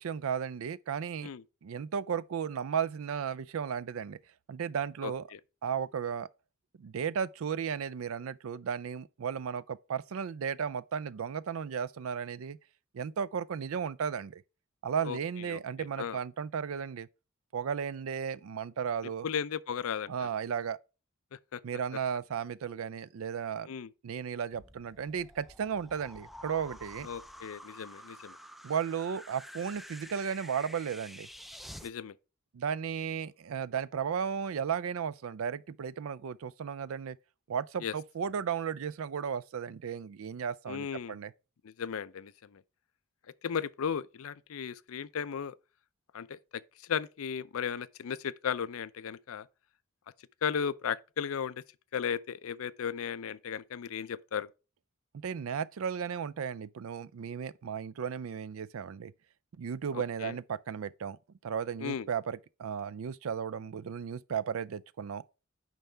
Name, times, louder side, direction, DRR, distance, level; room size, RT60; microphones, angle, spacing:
voice 1, 0.0-1.3 1.6-4.2 4.5-5.2 5.6-6.3 6.8-12.6 12.9-14.4 14.8-17.1 17.5-19.3 20.1-20.8 21.6-23.7 24.0-27.1 28.6-31.3 32.5-37.2 37.5-41.3 55.1-59.1 59.6-61.2 61.4-65.2, right 7 dB, 70° right, 0.4 m, -35 dB
voice 2, 5.0-5.4 15.0-15.2 15.5-16.2 19.2-20.3 21.5-21.6 23.7-23.9 27.0-28.4 31.8-32.2 37.8-37.9 40.7-41.2 41.6-42.6 43.4-45.5 46.1-46.6 46.9-49.5 50.4-51.6 51.9-54.5 59.9-60.3 61.8-62.1, left 7 dB, 75° left, 0.4 m, -35 dB
sound 1, 24.5-31.9, equal, ahead, 0.4 m, -49 dB
9.1 x 5.5 x 3.4 m
head